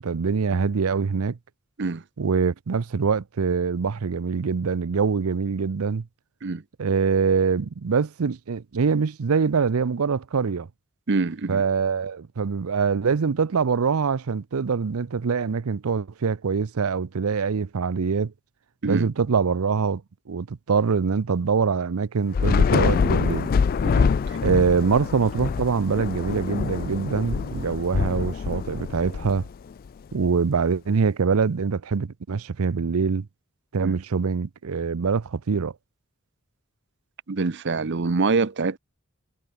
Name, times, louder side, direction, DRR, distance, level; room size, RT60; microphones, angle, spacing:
voice 1, 0.0-1.4 2.2-6.1 6.8-10.7 11.5-18.3 18.8-20.0 20.3-23.5 24.4-29.5 30.1-33.3 33.7-35.7, right 5 dB, 90° right, 0.6 m, -24 dB
voice 2, 11.1-11.6 18.8-19.1 23.8-24.4 33.7-34.0 37.3-38.8, right 4 dB, 55° right, 0.7 m, -25 dB
Thunder / Rain, 22.3-29.9, left 5 dB, 45° left, 0.3 m, -25 dB
head